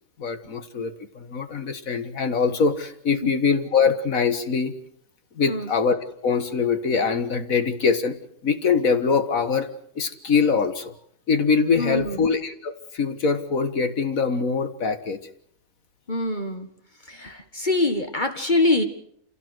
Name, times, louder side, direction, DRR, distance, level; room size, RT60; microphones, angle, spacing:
voice 1, 0.2-4.7 5.4-6.0 6.2-8.2 8.4-9.7 10.0-10.9 11.3-15.2, left 5 dB, 65° left, 9 dB, 1.9 m, -23 dB
voice 2, 11.7-12.2 16.1-16.7 17.0-18.8, left 2 dB, 30° left, 6 dB, 1.7 m, -24 dB
27.0 x 17.0 x 7.9 m, 0.71 s
omnidirectional pair, 1.6 m